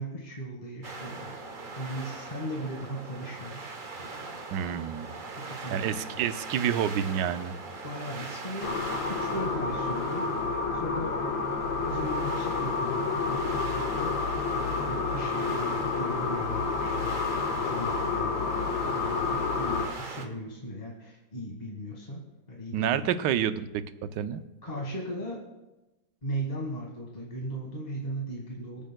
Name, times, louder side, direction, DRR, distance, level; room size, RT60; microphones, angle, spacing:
voice 1, 0.0-1.4 1.7-3.7 4.0-4.3 5.4-6.3 7.8-8.8 9.1-10.3 10.7-11.2 11.8-17.2 17.5-18.5 18.9-22.2 22.5-23.1 24.6-25.4 26.2-28.8, right 1 dB, 25° left, -2 dB, 1.5 m, -37 dB
sound 1, 0.8-20.3, right 3 dB, 35° right, 0.9 m, -41 dB
voice 2, 4.5-5.1 5.7-7.5 22.7-23.8 24.1-24.4, right 9 dB, 75° right, 12 dB, 1.2 m, -28 dB
sound 2, 8.6-19.9, left 4 dB, 85° left, 1.9 m, -29 dB
24.5 x 9.1 x 2.2 m, 1.0 s
omnidirectional pair, 2.0 m